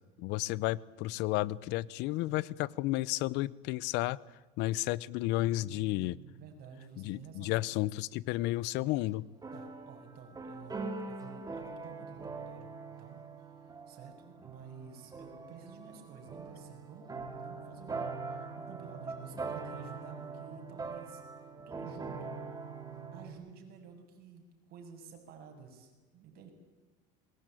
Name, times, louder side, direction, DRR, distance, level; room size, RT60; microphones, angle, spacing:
voice 1, 0.2-4.2 4.6-6.2 7.0-9.2, left 17 dB, 65° left, 22 dB, 0.8 m, -32 dB
voice 2, 5.3-7.6 9.5-13.2 13.9-22.4 23.1-26.5, right 6 dB, 55° right, 4 dB, 7.4 m, -52 dB
sound 1, 8.9-9.0 9.4-23.3, right 4 dB, 20° right, 3.9 m, -42 dB
27.0 x 21.5 x 9.2 m, 1.2 s
supercardioid pair, 120°, 19 cm